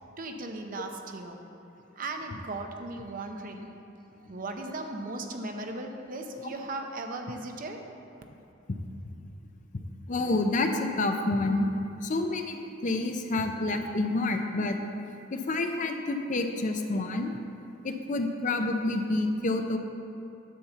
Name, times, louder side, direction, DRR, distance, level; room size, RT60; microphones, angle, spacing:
voice 1, 0.2-1.4 2.0-3.7 4.3-7.8, right 2 dB, 45° right, 4 dB, 0.7 m, -37 dB
voice 2, 10.1-11.7 12.0-12.6 12.8-14.8 15.3-17.3 17.8-19.8, left 2 dB, 40° left, 5 dB, 0.5 m, -28 dB
10.0 x 4.3 x 6.9 m, 2.8 s
head